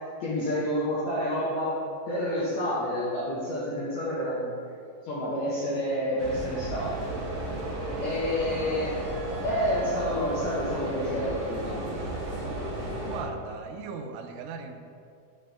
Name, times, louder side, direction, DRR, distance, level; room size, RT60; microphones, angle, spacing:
voice 1, 0.2-1.8 2.1-4.5 5.0-6.9 8.0-9.0 9.4-11.8, equal, 75° left, -8 dB, 1.6 m, -29 dB
sound 1, 6.2-13.2, right 1 dB, 65° right, 1.8 m, -34 dB
voice 2, 13.0-14.8, right 5 dB, 80° right, 4 dB, 2.1 m, -38 dB
9.4 x 3.9 x 3.3 m, 2.3 s
omnidirectional pair, 4.4 m